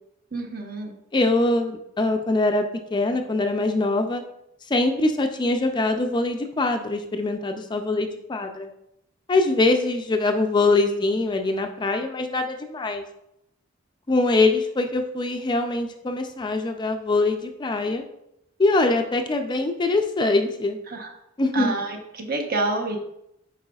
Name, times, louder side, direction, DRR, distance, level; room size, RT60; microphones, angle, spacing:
voice 1, 0.3-0.9 20.9-21.1 21.5-23.0, right 2 dB, 45° right, 3 dB, 0.9 m, -28 dB
voice 2, 1.1-4.2 4.7-8.7 9.3-13.0 14.1-18.0 18.6-20.8 21.4-21.8, left 2 dB, 20° left, 5 dB, 0.4 m, -23 dB
8.8 x 4.7 x 2.3 m, 0.80 s
head